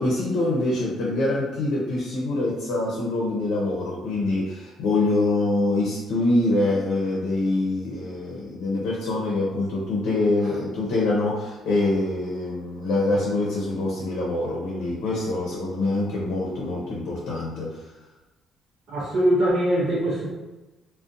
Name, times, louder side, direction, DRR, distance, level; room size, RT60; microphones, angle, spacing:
voice 1, 0.0-17.9, left 2 dB, 75° left, -4 dB, 0.6 m, -25 dB
voice 2, 18.9-20.3, right 1 dB, 50° right, -7 dB, 0.5 m, -22 dB
2.4 x 2.1 x 2.6 m, 1.1 s
cardioid pair, 165°, 0 cm